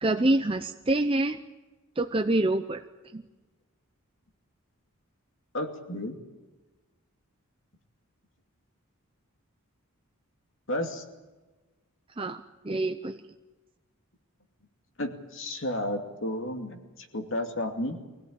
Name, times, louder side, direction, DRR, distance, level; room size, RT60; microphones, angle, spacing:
voice 1, 0.0-1.4 2.0-2.8 3.1-3.2 12.2-13.2, right 2 dB, 25° right, 7 dB, 0.6 m, -26 dB
voice 2, 5.5-6.2 10.7-11.0 15.0-18.0, left 1 dB, 60° left, 4 dB, 2.6 m, -32 dB
24.5 x 17.0 x 8.8 m, 1.2 s
head